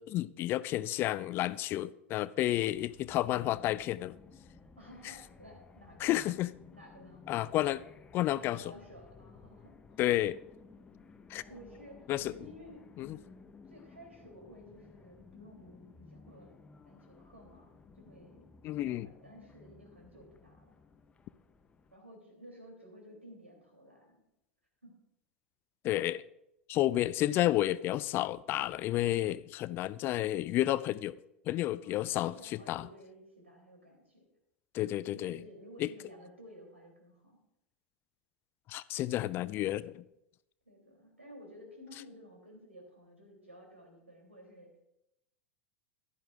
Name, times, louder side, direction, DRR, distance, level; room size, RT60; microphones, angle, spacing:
voice 1, 0.0-4.2 6.0-6.5 7.3-7.8 8.1-8.6 10.0-10.4 11.3-11.4 12.1-12.3 13.0-13.2 18.6-19.1 25.8-26.2 26.7-31.2 31.5-32.8 34.7-35.4 35.8-35.9 38.7-40.0, left 14 dB, 35° left, 0.3 m, -31 dB
sound 1, 2.7-21.9, left 4 dB, 15° left, 0.7 m, -56 dB
voice 2, 4.8-6.2 6.7-7.4 8.3-10.1 11.4-13.3 13.7-16.6 16.9-20.7 21.9-24.2 24.8-25.0 31.8-34.2 35.1-37.4 40.6-44.8, equal, 80° right, 3.2 m, -54 dB
15.0 x 11.5 x 2.5 m
figure-of-eight pair, 85°, 7 cm